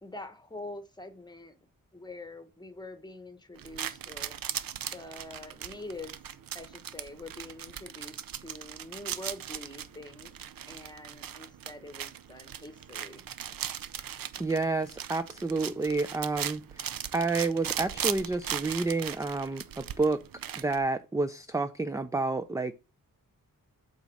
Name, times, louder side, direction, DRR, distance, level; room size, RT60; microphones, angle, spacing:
voice 1, 0.0-1.6 1.9-4.3 4.6-6.2 6.5-10.3 10.7-13.2, left 2 dB, 10° left, 1.1 m, -45 dB
sound 1, 3.6-20.8, right 9 dB, 80° right, 0.6 m, -39 dB
voice 2, 14.4-20.2 20.6-22.7, right 3 dB, 10° right, 0.3 m, -30 dB
8.2 x 4.1 x 6.1 m
wide cardioid pair, 175°, 34 cm